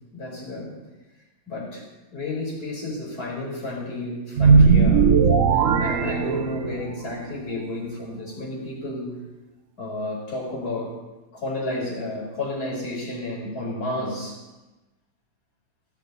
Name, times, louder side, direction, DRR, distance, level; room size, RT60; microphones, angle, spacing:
voice 1, 0.1-0.8 1.5-1.9 2.1-5.1 5.5-9.2 9.8-11.0 11.3-14.4, left 2 dB, 70° left, -4 dB, 5.0 m, -31 dB
sound 1, 4.4-6.9, right 5 dB, 60° right, 1.1 m, -17 dB
19.0 x 10.5 x 4.2 m, 1.1 s
omnidirectional pair, 1.7 m